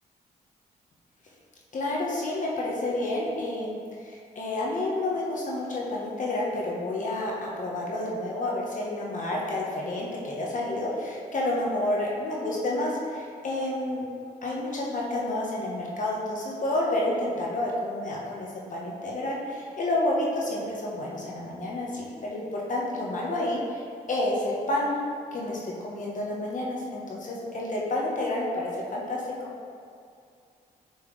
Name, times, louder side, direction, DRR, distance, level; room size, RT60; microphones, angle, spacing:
voice 1, 1.7-14.1 14.4-24.9 25.3-29.2, left 1 dB, 55° left, -4 dB, 1.3 m, -30 dB
7.0 x 4.6 x 3.3 m, 2.3 s
cardioid pair, 70°, 16 cm